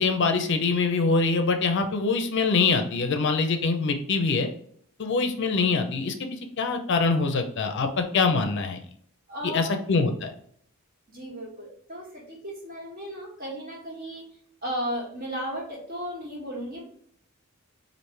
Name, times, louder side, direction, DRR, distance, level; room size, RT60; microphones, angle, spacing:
voice 1, 0.0-4.5 5.0-8.8 9.5-10.3, left 4 dB, 55° left, 6 dB, 0.5 m, -24 dB
voice 2, 9.3-9.8 11.1-14.2 14.6-16.8, equal, 40° right, -4 dB, 1.7 m, -35 dB
4.7 x 2.5 x 3.2 m, 0.62 s
head